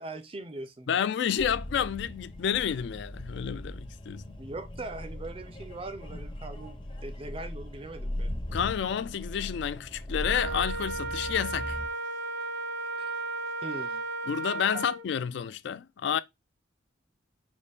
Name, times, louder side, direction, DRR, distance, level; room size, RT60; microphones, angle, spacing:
voice 1, 0.0-0.9 4.4-8.3 13.0-13.1 13.6-14.0, right 2 dB, 30° right, 0.4 m, -41 dB
voice 2, 0.9-4.4 8.5-11.8 14.3-16.2, left 8 dB, 60° left, 0.3 m, -30 dB
sound 1, 1.4-11.9, left 1 dB, 25° left, 0.6 m, -38 dB
Wind instrument woodwind instrument, 10.2-15.1, right 3 dB, 80° right, 0.7 m, -34 dB
5.2 x 2.4 x 3.4 m
head